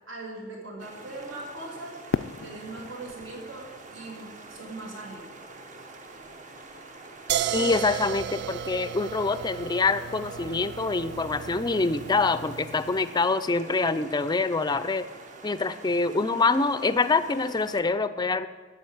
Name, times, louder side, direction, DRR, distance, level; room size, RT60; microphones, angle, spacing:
voice 1, 0.1-2.0 2.4-5.3, right 2 dB, 75° right, -1 dB, 2.7 m, -40 dB
sound 1, 0.8-17.8, right 3 dB, 40° right, 1.0 m, -46 dB
Fireworks, 2.1-5.2, left 6 dB, 85° left, 0.4 m, -36 dB
sound 2, 7.3-13.1, right 9 dB, 60° right, 0.4 m, -34 dB
voice 2, 7.5-15.1 15.4-18.5, left 3 dB, 20° left, 13 dB, 0.4 m, -25 dB
9.1 x 8.1 x 8.6 m, 1.5 s
head